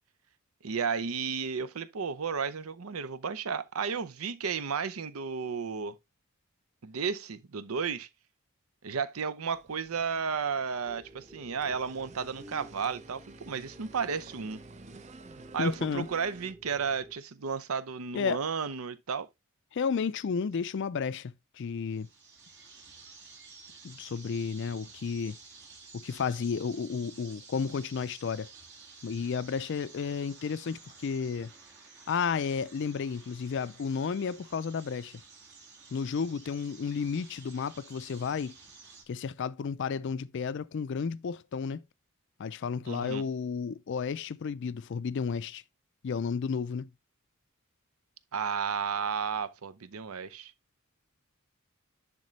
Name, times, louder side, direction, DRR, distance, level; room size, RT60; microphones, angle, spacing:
voice 1, 0.6-6.0 6.8-8.1 8.8-14.6 15.5-19.3 42.9-43.3 48.3-50.5, right 6 dB, 80° right, 0.6 m, -33 dB
sound 1, 9.5-16.5, right 3 dB, 30° right, 0.5 m, -53 dB
sound 2, 10.9-17.1, right 1 dB, 15° right, 0.9 m, -53 dB
voice 2, 15.6-16.1 18.1-18.4 19.7-22.1 23.8-25.4 25.9-28.5 29.0-31.5 32.1-35.1 35.9-38.6 39.1-41.8 42.4-45.6 46.0-46.9, left 6 dB, 55° left, 0.4 m, -32 dB
sound 3, 21.9-39.0, right 4 dB, 55° right, 2.1 m, -53 dB
10.5 x 3.7 x 3.1 m
head